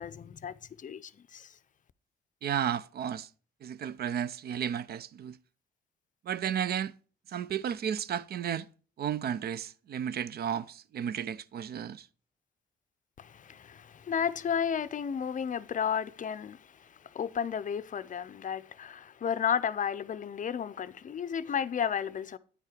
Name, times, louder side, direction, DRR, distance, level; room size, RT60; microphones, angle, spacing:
voice 1, 0.0-1.5 13.2-22.4, left 7 dB, 40° left, 0.5 m, -33 dB
voice 2, 2.4-3.3 3.6-5.4 6.3-6.9 7.3-8.7 9.0-12.1, right 9 dB, 55° right, 0.4 m, -33 dB
9.8 x 4.6 x 4.9 m
cardioid pair, 90°, 20 cm